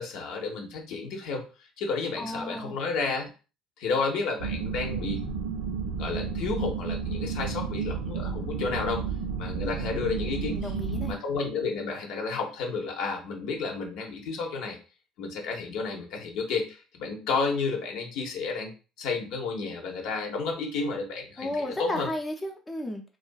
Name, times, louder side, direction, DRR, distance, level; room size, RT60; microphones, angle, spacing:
voice 1, 0.0-1.4 1.8-3.3 3.8-5.2 6.0-9.0 9.4-10.7 11.1-14.8 15.2-18.7 19.0-22.1, left 4 dB, 65° left, 1 dB, 0.7 m, -31 dB
voice 2, 2.2-2.8 9.6-9.8 10.5-11.2 21.4-23.0, left 1 dB, 20° left, 2 dB, 0.5 m, -33 dB
sound 1, 4.4-11.1, right 5 dB, 80° right, 0.5 m, -32 dB
2.4 x 2.3 x 2.3 m, 0.34 s
hypercardioid pair, 60°, 0 cm